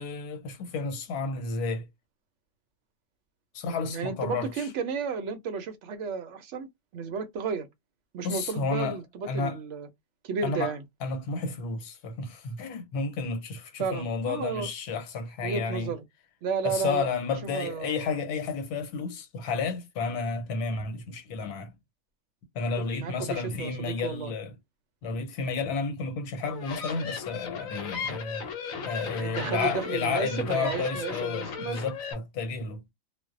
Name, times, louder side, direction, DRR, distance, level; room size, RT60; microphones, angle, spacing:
voice 1, 0.0-1.9 3.5-4.7 8.2-9.0 9.3-9.6 10.4-10.7 11.0-15.9 16.6-21.7 22.5-24.5 25.0-28.5 28.9-32.8, left 4 dB, 90° left, 1.2 m, -31 dB
voice 2, 3.9-6.7 6.9-7.7 8.1-9.9 10.2-10.8 13.8-14.7 15.4-16.0 16.4-17.1 17.4-18.2 23.0-24.3 29.2-31.8, right 6 dB, 70° right, 0.7 m, -33 dB
sound 1, 26.4-32.1, left 6 dB, 65° left, 1.0 m, -36 dB
2.5 x 2.0 x 2.4 m
omnidirectional pair, 1.6 m